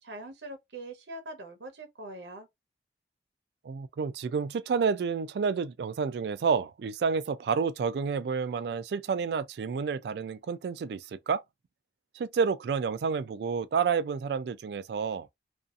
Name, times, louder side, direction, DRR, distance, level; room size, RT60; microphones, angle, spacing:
voice 1, 0.0-2.5, right 2 dB, 85° right, 0.8 m, -43 dB
voice 2, 3.6-11.4 12.2-15.3, right 5 dB, 70° right, 0.3 m, -29 dB
2.6 x 2.4 x 2.4 m
head